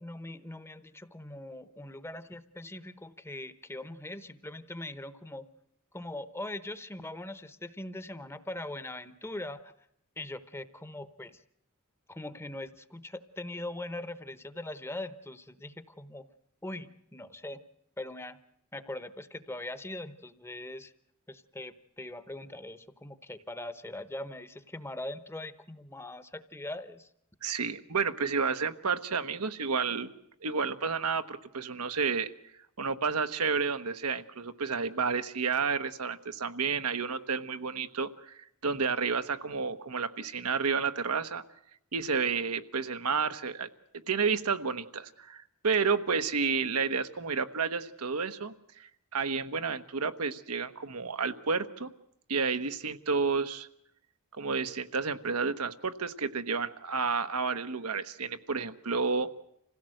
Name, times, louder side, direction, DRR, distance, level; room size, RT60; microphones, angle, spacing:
voice 1, 0.0-5.5 5.9-9.7 10.2-11.4 12.1-16.3 16.6-17.6 18.0-18.4 18.7-20.9 21.3-27.1, left 1 dB, 10° left, 14 dB, 0.9 m, -41 dB
voice 2, 27.4-30.1 30.4-32.3 32.8-41.4 41.9-43.7 44.1-51.9 52.3-53.7 54.3-59.3, right 5 dB, 85° right, 9 dB, 1.2 m, -31 dB
26.0 x 16.5 x 7.8 m, 0.77 s
head